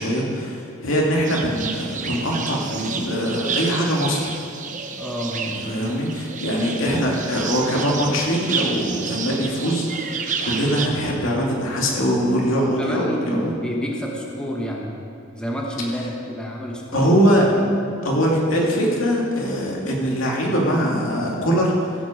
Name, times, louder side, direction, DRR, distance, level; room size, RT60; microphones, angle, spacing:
voice 1, 0.0-4.3 5.6-13.5 16.9-17.5 18.0-22.0, equal, 75° left, -2 dB, 2.5 m, -22 dB
sound 1, 1.2-10.9, right 5 dB, 40° right, 0.8 m, -30 dB
voice 2, 5.0-5.9 12.6-14.9 15.3-17.1 17.5-17.7, equal, 5° left, -2 dB, 1.2 m, -29 dB
15.0 x 8.3 x 5.1 m, 2.6 s
head